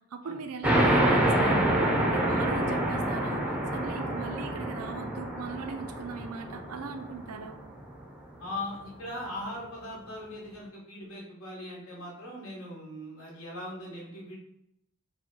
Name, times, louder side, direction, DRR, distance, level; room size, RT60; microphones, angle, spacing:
voice 1, 0.1-1.7 2.0-7.6, right 5 dB, 85° right, 6 dB, 0.5 m, -39 dB
sound 1, 0.6-7.8, right 1 dB, 5° right, 0.5 m, -27 dB
voice 2, 8.4-14.4, left 1 dB, 70° left, -4 dB, 1.5 m, -40 dB
4.9 x 2.1 x 3.8 m, 0.81 s
head